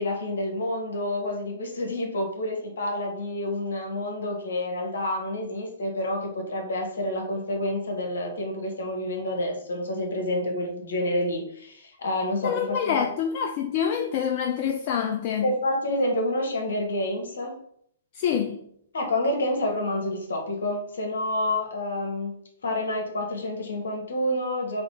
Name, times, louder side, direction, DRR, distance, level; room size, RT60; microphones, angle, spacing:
voice 1, 0.0-13.1 15.4-17.6 18.9-24.8, left 1 dB, 65° left, 1.2 m, -28 dB
voice 2, 12.4-15.5 18.1-18.6, left 8 dB, 40° left, 0.3 m, -26 dB
4.0 x 2.8 x 3.4 m
figure-of-eight pair, 115°, 0 cm